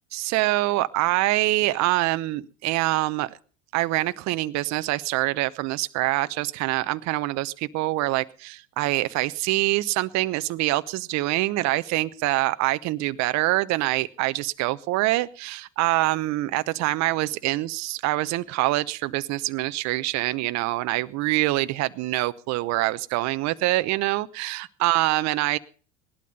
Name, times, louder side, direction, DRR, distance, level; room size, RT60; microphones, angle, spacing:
voice 1, 0.1-3.4 3.7-25.6, right 18 dB, 50° right, 13 dB, 0.9 m, -25 dB
18.5 x 12.0 x 5.3 m, 0.40 s
hypercardioid pair, 80°, 37 cm